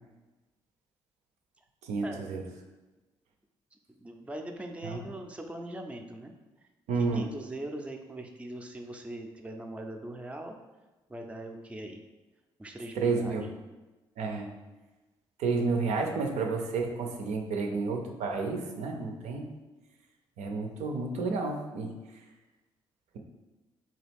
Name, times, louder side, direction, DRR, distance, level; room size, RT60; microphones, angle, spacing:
voice 1, 1.8-2.4 4.8-5.0 6.9-7.3 13.0-13.5 14.2-14.5 15.4-19.5 20.4-21.9, right 4 dB, 70° right, 2 dB, 0.5 m, -30 dB
voice 2, 3.9-6.3 7.0-10.6 11.1-12.0 12.6-13.4, right 1 dB, 10° right, 3 dB, 0.4 m, -41 dB
3.0 x 2.3 x 3.4 m, 1.1 s
hypercardioid pair, 45°, 12 cm